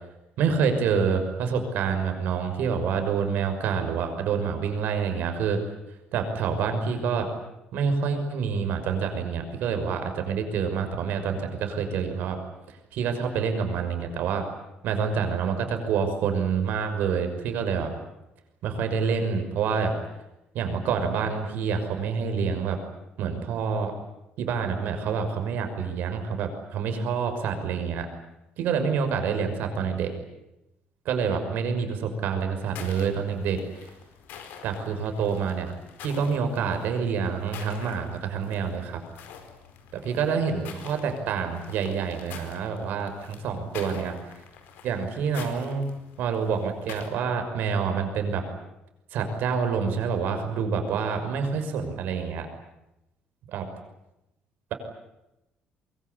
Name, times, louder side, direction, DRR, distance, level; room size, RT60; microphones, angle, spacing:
voice 1, 0.4-5.6 6.1-7.3 7.7-12.4 12.7-14.4 14.8-17.9 18.6-19.9 20.5-22.8 23.2-23.9 24.4-28.1 28.6-30.1 31.0-33.6 34.6-35.7 36.0-39.0 40.0-44.1 44.8-45.9 46.2-48.4 49.1-52.5 53.5-53.6, right 6 dB, 70° right, 6 dB, 5.9 m, -27 dB
sound 1, 32.6-47.1, left 7 dB, 75° left, 4.7 m, -46 dB
24.0 x 23.5 x 9.8 m, 0.92 s
cardioid pair, 155°, 3 cm